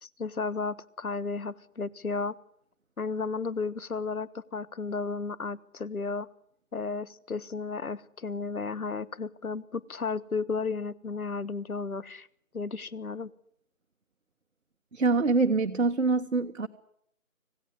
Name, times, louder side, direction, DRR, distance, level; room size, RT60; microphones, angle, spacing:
voice 1, 0.0-2.4 3.0-6.3 6.7-12.3 12.5-13.3, left 4 dB, 80° left, 19 dB, 1.4 m, -33 dB
voice 2, 14.9-16.7, right 3 dB, 65° right, 5 dB, 1.4 m, -25 dB
26.0 x 17.5 x 9.6 m, 0.71 s
figure-of-eight pair, 180°, 42 cm